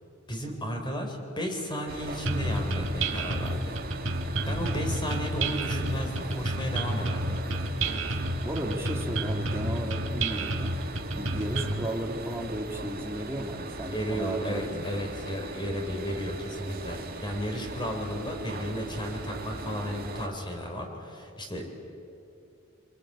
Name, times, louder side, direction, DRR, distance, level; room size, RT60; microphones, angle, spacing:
voice 1, 0.3-3.8 4.4-7.4 13.9-21.8, equal, 25° left, 3 dB, 3.9 m, -33 dB
sound 1, 1.9-20.3, right 2 dB, 45° right, 2.4 m, -39 dB
sound 2, 2.3-11.9, right 1 dB, 65° right, 1.8 m, -30 dB
voice 2, 8.4-10.7 11.1-14.8, right 1 dB, 10° right, 0 dB, 2.4 m, -34 dB
26.5 x 23.0 x 8.8 m, 2.7 s
head